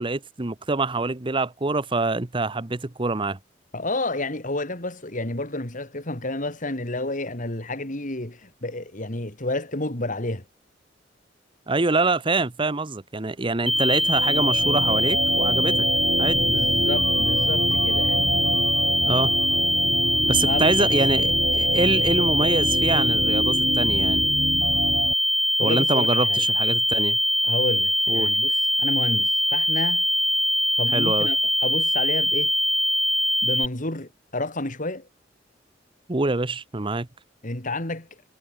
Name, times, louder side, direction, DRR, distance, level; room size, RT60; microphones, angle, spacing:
voice 1, 0.0-3.4 11.7-15.9 16.2-16.5 19.1-19.3 20.3-24.3 25.6-27.2 28.1-28.3 30.9-31.3 36.1-37.1, right 3 dB, 25° right, 0.9 m, -25 dB
voice 2, 3.7-10.4 16.4-18.7 20.4-20.9 25.6-26.4 27.4-30.0 30.8-32.5 33.4-35.1 37.4-38.1, left 2 dB, 45° left, 3.6 m, -30 dB
sound 1, 13.7-33.7, equal, ahead, 2.2 m, -22 dB
sound 2, 13.7-25.1, right 1 dB, 50° right, 3.4 m, -28 dB
head